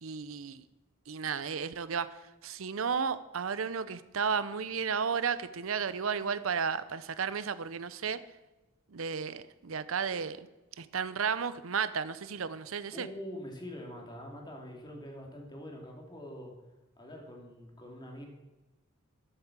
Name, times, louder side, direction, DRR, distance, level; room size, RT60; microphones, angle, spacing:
voice 1, 0.0-0.6 1.1-2.1 2.4-8.2 8.9-10.5 10.8-13.1, right 6 dB, 85° right, 14 dB, 0.7 m, -33 dB
voice 2, 12.9-16.5 17.0-18.3, equal, 20° left, 0 dB, 2.8 m, -44 dB
12.5 x 8.2 x 7.4 m, 1.0 s
head